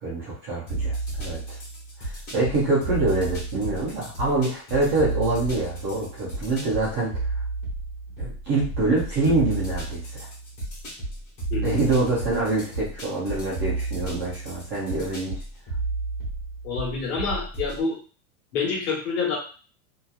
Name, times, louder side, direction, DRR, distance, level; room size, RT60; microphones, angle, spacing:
voice 1, 0.0-1.6 2.0-7.1 8.2-10.3 11.6-15.4, right 2 dB, 20° right, -8 dB, 0.3 m, -25 dB
sound 1, 0.7-17.8, right 3 dB, 30° left, 1.1 m, -32 dB
voice 2, 11.5-11.8 16.6-18.0 18.5-19.4, left 4 dB, 85° left, -1 dB, 1.3 m, -27 dB
2.8 x 2.2 x 2.3 m, 0.38 s
supercardioid pair, 175°, 43 cm